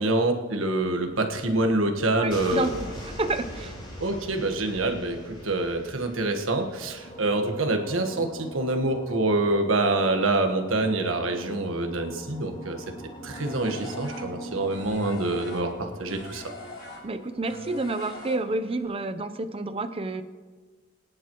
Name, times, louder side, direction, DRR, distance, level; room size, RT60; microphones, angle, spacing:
voice 1, 0.0-2.7 4.0-12.8 13.2-16.4, right 2 dB, 80° right, 4 dB, 1.4 m, -26 dB
sound 1, 1.1-19.1, equal, 25° left, 3.8 m, -43 dB
voice 2, 2.2-2.7 3.1-3.8 17.0-20.2, right 2 dB, 30° right, 9 dB, 0.7 m, -29 dB
sound 2, 13.3-18.8, left 2 dB, 60° left, 4.2 m, -42 dB
23.5 x 10.5 x 3.1 m, 1.4 s
head